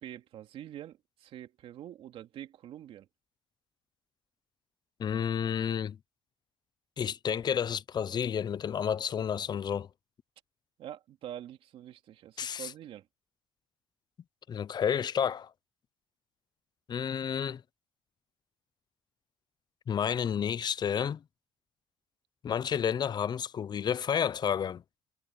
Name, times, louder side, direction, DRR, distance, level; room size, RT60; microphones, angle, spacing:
voice 1, 0.0-3.1 10.8-13.1, right 11 dB, 70° right, 2.6 m, -45 dB
voice 2, 5.0-6.0 7.0-9.9 12.4-12.7 14.5-15.5 16.9-17.6 19.9-21.2 22.4-24.8, left 8 dB, 45° left, 0.7 m, -30 dB
cardioid pair, 80°, 10 cm